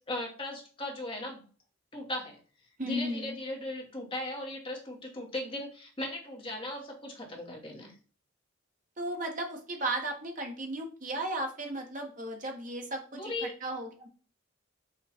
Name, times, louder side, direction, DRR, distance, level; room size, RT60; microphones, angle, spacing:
voice 1, 0.0-1.5 1.9-2.4 2.8-7.9 13.1-13.5, left 1 dB, 25° left, 0 dB, 0.9 m, -37 dB
voice 2, 2.8-3.4 9.0-14.1, right 1 dB, 40° right, 3 dB, 0.8 m, -35 dB
4.3 x 2.3 x 4.1 m, 0.39 s
head